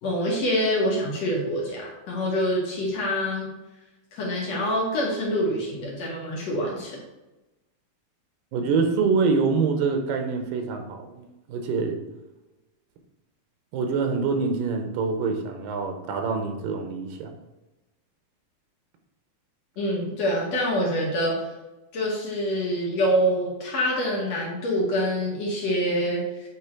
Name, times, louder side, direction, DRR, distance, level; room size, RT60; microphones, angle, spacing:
voice 1, 0.0-3.5 4.1-7.0 19.8-21.5 21.9-26.5, equal, 55° left, -3 dB, 2.3 m, -26 dB
voice 2, 8.5-12.0 13.7-17.3, right 4 dB, 80° right, 5 dB, 2.6 m, -25 dB
8.6 x 3.6 x 4.5 m, 1.0 s
omnidirectional pair, 4.0 m